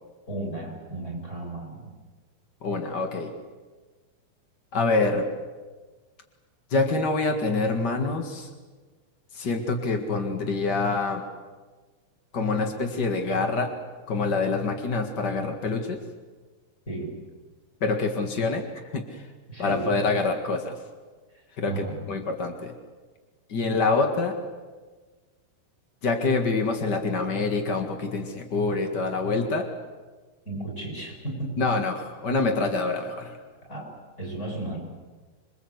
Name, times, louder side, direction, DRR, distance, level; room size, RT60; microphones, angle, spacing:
voice 1, 0.3-1.9 16.9-17.2 19.5-19.9 21.6-22.0 30.4-31.5 33.6-34.8, right 2 dB, 15° left, -1 dB, 7.7 m, -34 dB
voice 2, 2.6-3.3 4.7-5.3 6.7-8.5 9.3-11.2 12.3-13.7 14.1-16.0 17.8-19.3 19.6-20.8 21.6-22.7 23.5-24.3 26.0-29.7 31.6-33.4, left 3 dB, 70° left, 4 dB, 0.9 m, -26 dB
26.5 x 22.5 x 8.1 m, 1.4 s
omnidirectional pair, 5.2 m